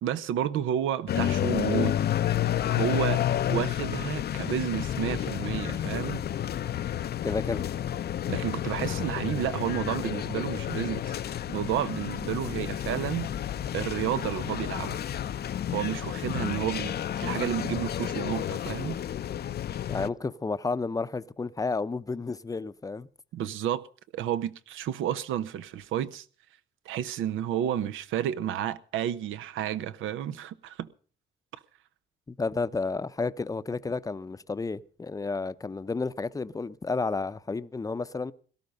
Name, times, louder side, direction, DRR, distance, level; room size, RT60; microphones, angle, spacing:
voice 1, 0.0-1.9 2.7-3.2 3.5-6.2 8.3-11.1 11.5-13.3 13.7-15.0 15.7-19.0 23.3-23.8 24.1-26.2 26.9-30.9, right 10 dB, 85° right, 0.9 m, -31 dB
sound 1, 1.1-20.1, left 11 dB, 55° left, 0.6 m, -30 dB
voice 2, 7.2-7.6 19.9-23.1 32.3-38.3, left 3 dB, 15° left, 0.7 m, -31 dB
17.5 x 12.0 x 5.3 m
cardioid pair, 90°, 20 cm